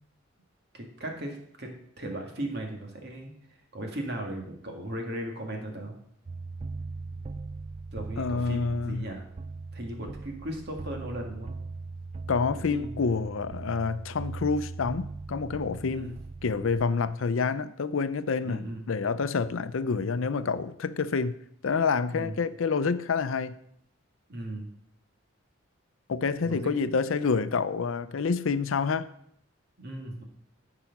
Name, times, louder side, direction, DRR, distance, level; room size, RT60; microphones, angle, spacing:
voice 1, 0.7-1.7 2.0-3.3 3.7-6.0 7.9-9.3 9.7-11.5 12.7-13.1 15.8-16.1 18.4-18.8 22.1-22.3 24.3-24.7 26.4-26.7 29.8-30.2, right 1 dB, 50° right, 2.0 m, -37 dB
sound 1, 6.3-16.8, right 3 dB, 30° right, 0.3 m, -40 dB
voice 2, 8.2-9.1 12.3-21.3 21.6-23.6 26.1-29.1, left 5 dB, 75° left, 0.5 m, -28 dB
13.0 x 4.8 x 5.9 m
head